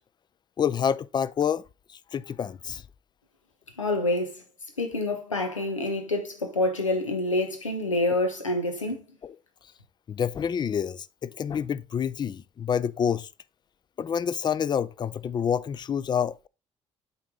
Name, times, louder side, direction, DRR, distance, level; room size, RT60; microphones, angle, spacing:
voice 1, 0.6-1.6 2.1-2.8 9.2-9.3 10.1-13.3 14.0-16.5, left 8 dB, 30° left, 0.4 m, -28 dB
voice 2, 3.8-4.4 4.8-9.0, left 2 dB, 85° left, 0.9 m, -27 dB
8.2 x 4.1 x 3.7 m
figure-of-eight pair, 50°, 16 cm